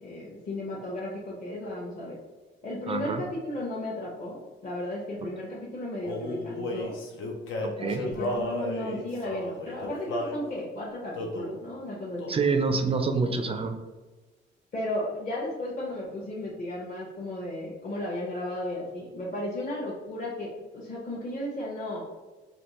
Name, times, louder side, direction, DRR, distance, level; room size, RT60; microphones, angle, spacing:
voice 1, 0.0-2.2 2.6-7.0 7.8-12.4 14.7-22.0, left 1 dB, 40° left, -5 dB, 0.8 m, -34 dB
voice 2, 2.9-3.3 7.6-8.0 12.3-13.7, right 4 dB, 30° right, 5 dB, 0.4 m, -27 dB
Male singing, 6.0-10.4 11.1-11.6 12.2-12.5 12.7-13.7, left 1 dB, 85° left, 0.6 m, -34 dB
3.3 x 2.3 x 3.0 m, 1.2 s
cardioid pair, 90°, 20 cm